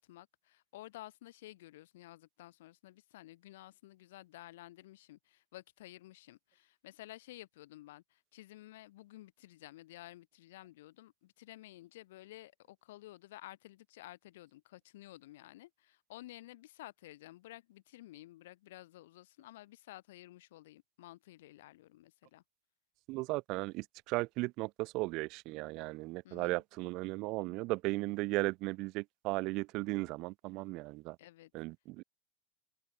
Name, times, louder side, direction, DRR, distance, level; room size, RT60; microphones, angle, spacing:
voice 1, 0.0-22.4 26.2-26.6 31.2-31.5, left 16 dB, 80° left, 7.9 m, -53 dB
voice 2, 23.1-31.2 31.5-32.0, right 23 dB, 55° right, 2.0 m, -36 dB
open air
hypercardioid pair, 105°, 0 cm